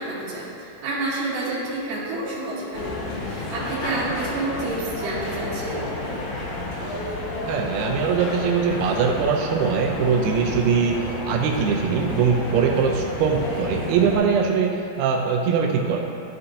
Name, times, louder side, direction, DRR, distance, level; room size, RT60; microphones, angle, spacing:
voice 1, 0.0-2.9 3.2-5.9, right 2 dB, 65° right, -9 dB, 2.6 m, -29 dB
sound 1, 2.7-14.2, left 2 dB, 60° left, 2.2 m, -31 dB
voice 2, 7.5-11.0 11.3-16.0, right 6 dB, 80° right, 1 dB, 2.4 m, -22 dB
12.5 x 5.6 x 2.7 m, 2.7 s
omnidirectional pair, 4.7 m